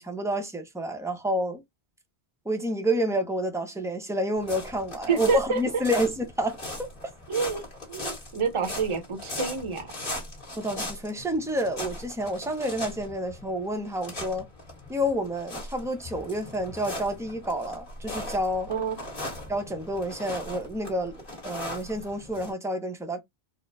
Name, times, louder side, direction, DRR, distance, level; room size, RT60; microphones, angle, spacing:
voice 1, 0.0-1.6 2.4-6.6 10.6-14.5 14.9-18.7 19.5-23.2, equal, 5° right, 0.6 m, -29 dB
sound 1, 4.4-22.5, left 1 dB, 50° left, 2.1 m, -39 dB
voice 2, 5.1-5.8 7.3-7.6 7.9-9.8 18.7-19.0, right 5 dB, 30° right, 0.8 m, -27 dB
4.4 x 2.2 x 3.5 m
omnidirectional pair, 1.1 m